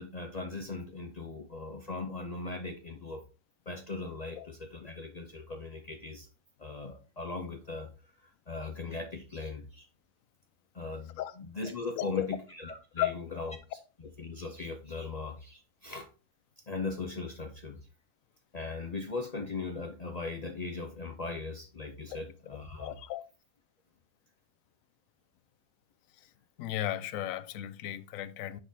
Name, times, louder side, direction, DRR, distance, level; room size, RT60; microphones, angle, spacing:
voice 1, 0.0-3.2 3.7-6.3 6.6-7.9 8.2-9.9 10.7-13.6 14.2-16.1 16.7-17.8 18.5-23.0, left 3 dB, 55° left, 0.4 m, -39 dB
voice 2, 11.9-12.3 13.0-13.6 22.1-22.2 22.8-23.2 26.2-26.3 26.6-28.6, left 13 dB, 75° left, 1.0 m, -35 dB
9.6 x 4.0 x 2.7 m
omnidirectional pair, 1.5 m